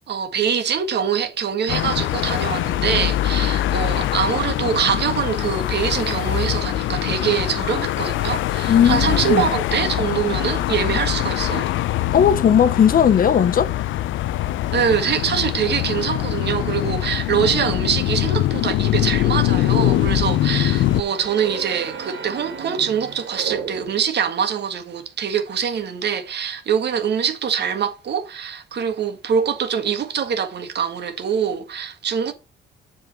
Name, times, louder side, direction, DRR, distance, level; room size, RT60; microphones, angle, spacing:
voice 1, 0.1-11.7 14.7-32.3, right 7 dB, 60° right, 1.6 m, -24 dB
sound 1, 1.7-21.0, left 14 dB, 80° left, 0.5 m, -23 dB
voice 2, 8.7-9.4 12.1-13.7, left 8 dB, 45° left, 0.7 m, -16 dB
sound 2, 19.0-24.2, right 6 dB, 75° right, 1.9 m, -35 dB
7.6 x 3.8 x 6.7 m
cardioid pair, 90°, 20 cm